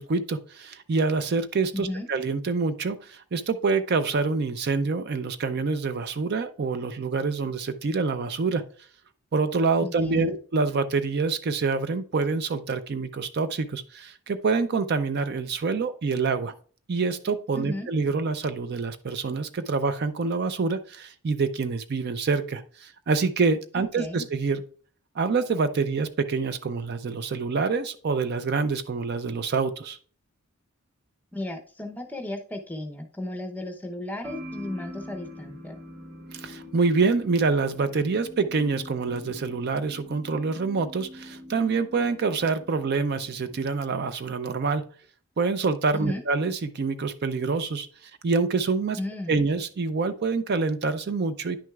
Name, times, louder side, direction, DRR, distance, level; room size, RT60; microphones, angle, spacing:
voice 1, 0.0-8.6 9.3-16.5 16.9-24.6 25.2-30.0 36.3-44.8 45.4-49.0 49.3-51.6, right 4 dB, 45° right, 11 dB, 0.4 m, -26 dB
voice 2, 1.7-2.1 9.8-10.4 17.5-17.9 23.7-24.3 31.3-35.8 45.9-46.2 49.0-49.4, left 1 dB, 5° left, 4 dB, 0.7 m, -34 dB
sound 1, 34.2-43.7, left 1 dB, 75° right, 1.6 m, -44 dB
9.9 x 6.1 x 2.3 m, 0.43 s
head